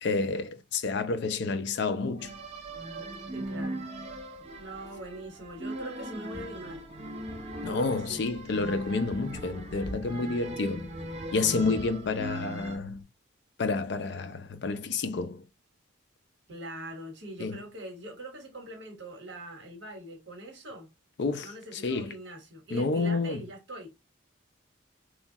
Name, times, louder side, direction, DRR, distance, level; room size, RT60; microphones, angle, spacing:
voice 1, 0.0-2.3 7.6-10.9 11.3-13.0 13.6-15.4 17.4-17.6 21.2-22.1 22.7-23.4, left 3 dB, 60° left, 0.4 m, -29 dB
sound 1, 2.2-12.8, right 1 dB, 30° right, 0.5 m, -40 dB
voice 2, 3.3-3.9 4.6-6.8 7.6-8.2 16.5-20.9 21.4-23.9, right 1 dB, 60° right, 1.1 m, -43 dB
sound 2, 6.3-13.0, equal, 30° left, 1.9 m, -47 dB
3.0 x 2.2 x 2.7 m
head